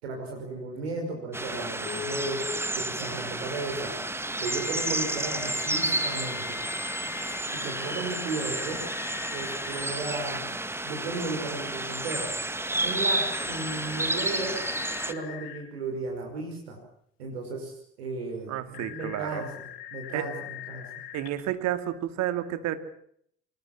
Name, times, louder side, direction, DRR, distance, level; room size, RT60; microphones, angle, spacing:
voice 1, 0.0-2.5 2.7-4.0 4.4-6.6 7.5-8.8 9.3-10.5 10.8-12.3 12.8-14.6 15.1-16.8 17.2-19.5 19.9-20.9, right 3 dB, 80° right, 2 dB, 5.6 m, -35 dB
sound 1, 1.3-15.1, right 2 dB, 10° right, 2.0 m, -31 dB
Telephone, 1.8-2.6 4.4-10.0 13.1-15.6 18.7-21.3, left 12 dB, 70° left, 3.7 m, -41 dB
voice 2, 18.5-19.4 20.1-20.3 21.1-22.8, right 12 dB, 60° right, 10 dB, 2.5 m, -31 dB
25.0 x 21.5 x 7.5 m, 0.68 s
hypercardioid pair, 60°, 31 cm